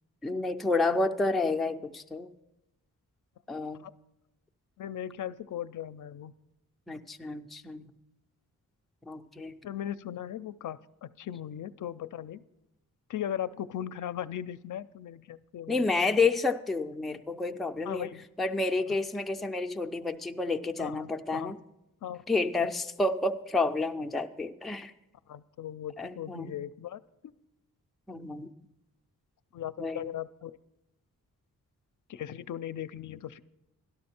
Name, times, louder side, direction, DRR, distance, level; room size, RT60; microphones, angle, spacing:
voice 1, 0.2-2.3 3.5-3.8 6.9-7.9 9.1-9.5 15.7-18.1 18.4-21.6 22.3-24.9 26.0-26.6 28.1-28.5 29.8-30.1, left 3 dB, ahead, 5 dB, 0.3 m, -30 dB
voice 2, 4.8-6.3 9.6-12.4 13.1-15.9 17.8-18.3 18.9-19.0 20.8-21.5 22.0-22.2 25.3-27.0 29.5-30.6 32.1-33.4, left 10 dB, 65° left, 13 dB, 0.4 m, -38 dB
12.5 x 12.0 x 4.3 m, 0.92 s
wide cardioid pair, 135°, 34 cm